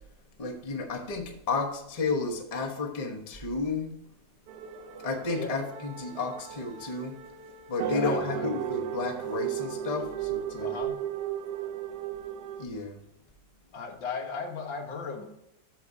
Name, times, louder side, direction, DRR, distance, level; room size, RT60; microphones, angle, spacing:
voice 1, 0.4-3.9 5.0-7.2 7.7-10.7 12.6-13.0, left 4 dB, 25° left, 3 dB, 0.9 m, -32 dB
sound 1, 4.5-12.7, right 10 dB, 70° right, 1.1 m, -35 dB
voice 2, 7.8-8.5 10.6-11.0 13.7-15.2, left 5 dB, 80° left, 3 dB, 2.0 m, -36 dB
13.5 x 4.9 x 2.7 m, 0.84 s
omnidirectional pair, 2.0 m